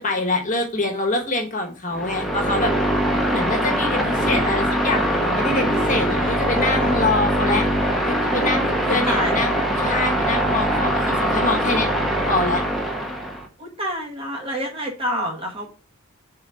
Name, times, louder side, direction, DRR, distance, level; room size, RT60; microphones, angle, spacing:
voice 1, 0.0-2.7 3.3-7.7 8.0-11.9 12.2-12.6, left 2 dB, 35° left, 2 dB, 1.2 m, -25 dB
sound 1, 1.9-13.5, right 1 dB, ahead, 0.9 m, -22 dB
voice 2, 3.1-3.4 8.9-9.4 13.6-15.6, equal, 25° right, 1 dB, 1.2 m, -28 dB
4.8 x 3.9 x 5.6 m, 0.36 s
head